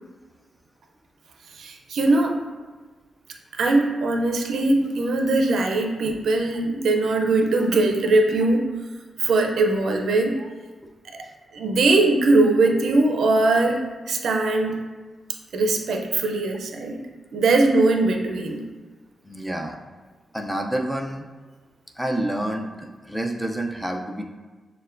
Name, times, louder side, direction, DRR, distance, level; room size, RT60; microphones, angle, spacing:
voice 1, 1.6-2.4 3.5-8.7 9.2-10.4 11.5-13.8 14.1-14.8 15.5-17.0 17.3-18.6, right 2 dB, 80° right, 2 dB, 0.4 m, -21 dB
voice 2, 19.2-19.8 20.3-21.3 22.0-24.2, right 1 dB, ahead, 1 dB, 0.4 m, -28 dB
6.3 x 2.2 x 2.5 m, 1.4 s
cardioid pair, 85°, 0 cm